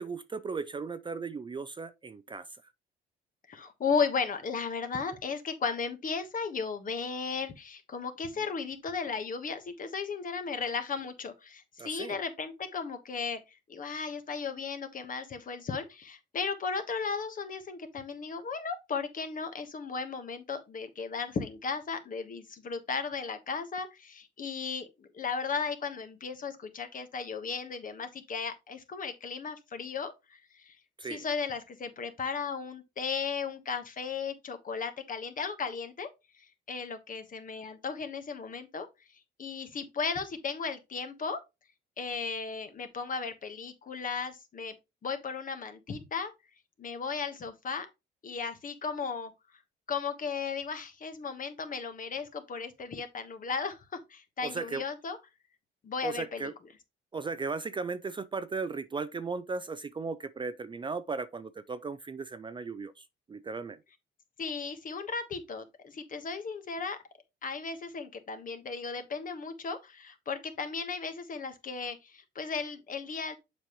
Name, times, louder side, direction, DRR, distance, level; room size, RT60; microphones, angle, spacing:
voice 1, 0.0-2.5 11.8-12.2 31.0-31.2 54.4-54.8 56.0-56.5 57.1-63.8, right 4 dB, 25° right, 0.4 m, -36 dB
voice 2, 3.5-30.8 31.0-36.1 36.7-38.9 39.4-41.4 42.0-44.7 45.0-46.3 46.8-47.9 48.2-49.3 49.9-55.2 55.8-56.5 64.4-67.0 67.4-73.4, left 5 dB, 45° left, 1.3 m, -35 dB
7.3 x 5.3 x 3.0 m
cardioid pair, 100°, 20 cm